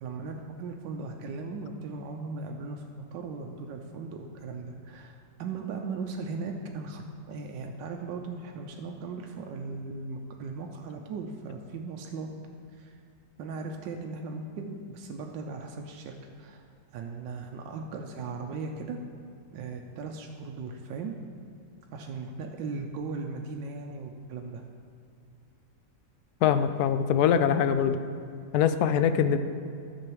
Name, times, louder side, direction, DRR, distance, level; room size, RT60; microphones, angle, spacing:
voice 1, 0.0-12.3 12.8-13.0 13.4-16.6 16.9-19.0 19.5-21.1 21.9-24.6, right 4 dB, 85° right, 2 dB, 1.4 m, -38 dB
voice 2, 26.4-28.0 28.5-29.4, left 8 dB, 70° left, 10 dB, 1.0 m, -23 dB
10.5 x 7.0 x 4.7 m, 2.5 s
omnidirectional pair, 1.9 m